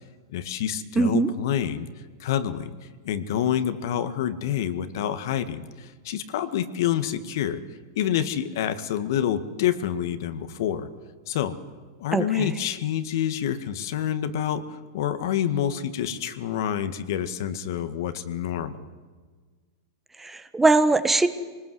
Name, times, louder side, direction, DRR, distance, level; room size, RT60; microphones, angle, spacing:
voice 1, 0.3-1.9 2.2-2.7 3.0-7.6 8.0-10.9 11.3-11.6 12.0-18.9, left 10 dB, 65° left, 11 dB, 1.8 m, -27 dB
voice 2, 0.9-1.3 12.1-12.5 20.2-21.3, right 3 dB, 10° right, 11 dB, 1.4 m, -21 dB
24.5 x 19.5 x 7.9 m, 1.5 s
hypercardioid pair, 115°, 2 cm